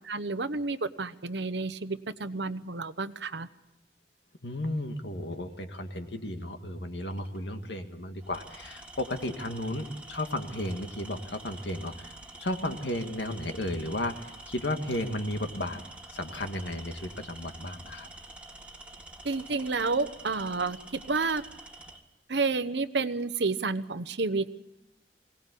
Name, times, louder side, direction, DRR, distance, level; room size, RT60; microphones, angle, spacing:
voice 1, 0.0-3.5 19.2-21.4 22.3-24.5, right 3 dB, 70° right, 13 dB, 1.0 m, -30 dB
voice 2, 4.4-12.1 12.4-15.8 16.1-18.1, left 1 dB, 75° left, 6 dB, 2.0 m, -34 dB
Tools, 7.1-7.4 8.2-22.0, right 2 dB, 5° right, 2.0 m, -47 dB
23.0 x 18.5 x 8.4 m, 0.89 s
head